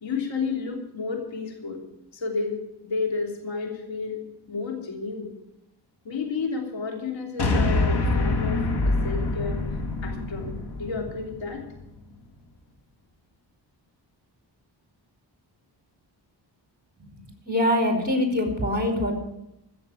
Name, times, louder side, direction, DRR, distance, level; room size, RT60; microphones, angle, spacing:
voice 1, 0.0-1.8 2.1-4.2 4.5-5.3 6.0-9.6 10.0-10.5 10.8-11.6, left 4 dB, 85° left, 2 dB, 3.3 m, -31 dB
sound 1, 7.4-11.8, left 2 dB, 60° left, 2.4 m, -25 dB
voice 2, 17.5-19.1, left 1 dB, 20° right, 4 dB, 5.0 m, -23 dB
15.0 x 7.3 x 9.1 m, 0.87 s
cardioid pair, 55°, 44 cm